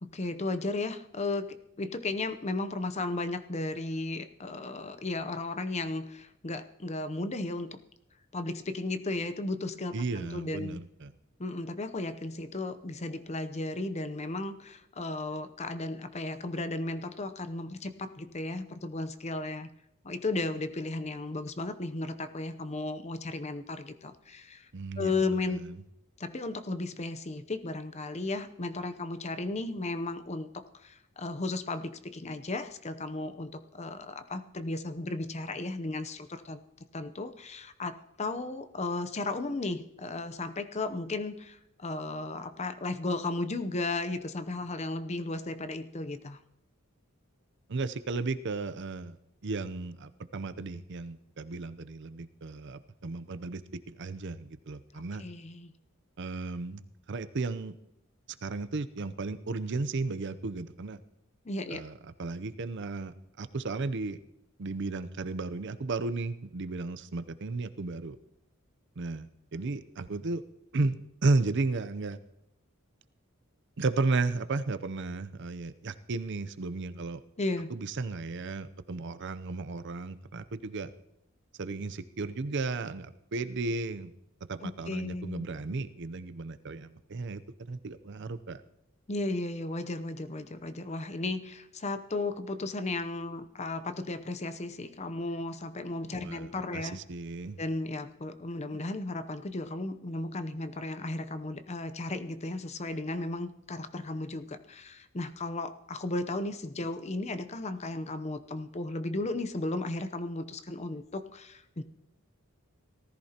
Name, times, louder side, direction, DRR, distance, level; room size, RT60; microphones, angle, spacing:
voice 1, 0.0-1.5 1.8-7.8 8.3-10.8 11.4-19.7 20.0-24.7 25.0-25.6 26.2-36.6 36.9-46.4 54.9-55.7 61.4-61.8 77.4-77.7 84.6-85.4 89.1-97.0 97.6-111.8, left 2 dB, 30° left, 11 dB, 0.7 m, -35 dB
voice 2, 9.9-11.1 24.7-25.8 47.7-49.2 49.4-55.2 56.2-56.8 57.1-57.7 58.4-61.0 61.7-64.2 64.6-68.2 69.0-70.4 70.7-72.2 73.8-77.2 77.7-80.9 81.6-84.1 84.5-88.6 96.1-97.6, right 3 dB, 60° right, 12 dB, 0.6 m, -34 dB
18.5 x 14.0 x 2.9 m, 0.81 s
head